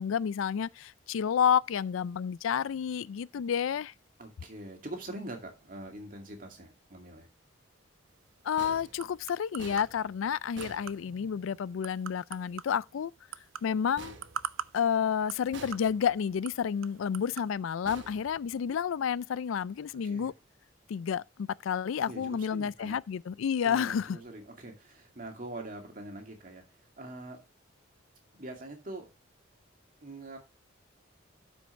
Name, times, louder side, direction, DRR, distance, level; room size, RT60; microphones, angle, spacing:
voice 1, 0.0-3.9 8.4-13.1 13.6-14.2 14.7-20.3 20.9-24.2, left 7 dB, 80° left, 0.4 m, -30 dB
voice 2, 4.2-7.3 20.0-20.3 22.0-23.0 23.6-26.6 27.0-27.4 28.3-29.1 30.0-30.4, right 1 dB, 40° right, 2.3 m, -43 dB
sound 1, 8.1-17.5, right 8 dB, 85° right, 0.5 m, -45 dB
sound 2, 8.6-11.6 14.0-15.0 15.5-16.3 17.8-18.9, right 3 dB, 65° right, 1.1 m, -49 dB
12.5 x 5.4 x 3.2 m
head